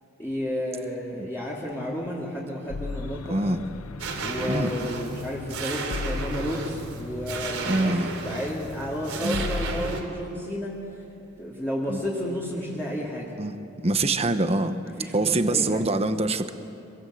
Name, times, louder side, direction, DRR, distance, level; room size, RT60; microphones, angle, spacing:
voice 1, 0.2-3.4 4.1-8.0 8.2-10.7 11.4-13.3 15.0-15.9, equal, 10° left, -7 dB, 3.0 m, -32 dB
sound 1, 2.7-10.0, left 3 dB, 90° left, 0.7 m, -36 dB
voice 2, 3.3-3.6 4.5-4.7 7.7-8.1 9.2-9.4 11.9-12.0 13.4-13.6 13.8-14.7 15.1-16.5, right 2 dB, 30° right, 9 dB, 1.0 m, -24 dB
sound 2, 4.0-10.0, right 4 dB, 85° right, 3.3 m, -34 dB
26.0 x 22.5 x 7.9 m, 2.7 s
head